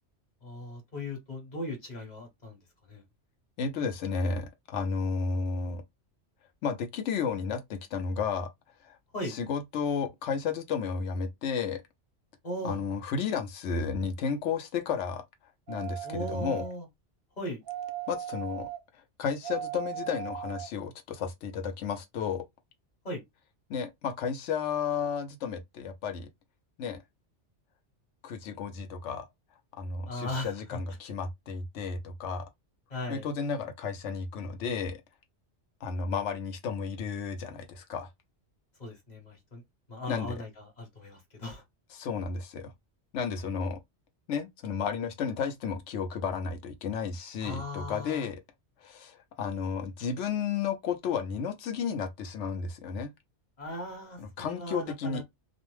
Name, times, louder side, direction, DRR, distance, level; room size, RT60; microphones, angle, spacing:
voice 1, 0.4-2.6 2.9-3.0 9.1-9.3 12.4-12.8 16.0-16.9 17.4-17.6 23.0-23.2 30.1-30.8 32.9-33.3 38.8-39.6 39.9-41.6 47.4-48.3 53.6-55.2, left 1 dB, 40° left, 1.2 m, -38 dB
voice 2, 3.6-5.8 6.6-8.5 8.8-9.0 9.2-11.8 12.6-15.2 15.7-16.7 18.1-18.7 19.2-22.4 23.7-26.3 26.8-27.0 28.2-29.2 29.8-32.5 33.1-35.0 35.8-38.1 40.1-40.4 41.9-42.7 43.1-43.8 44.3-48.4 48.8-53.1 54.2-55.2, left 6 dB, 80° left, 0.9 m, -32 dB
sound 1, 15.7-16.7 17.7-18.8 19.4-20.7 21.3-21.4, right 11 dB, 60° right, 0.6 m, -38 dB
2.5 x 2.1 x 3.0 m
omnidirectional pair, 1.2 m